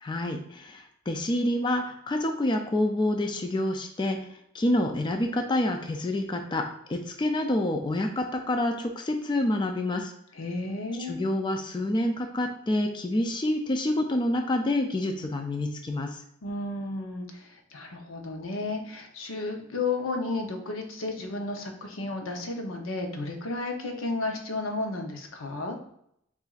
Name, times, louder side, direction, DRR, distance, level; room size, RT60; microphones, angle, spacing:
voice 1, 0.0-4.2 4.5-10.1 11.1-16.1, left 1 dB, 25° left, 4 dB, 0.4 m, -27 dB
voice 2, 10.3-11.2 16.4-25.8, left 3 dB, 90° left, 3 dB, 0.7 m, -33 dB
6.8 x 2.5 x 2.4 m, 0.74 s
head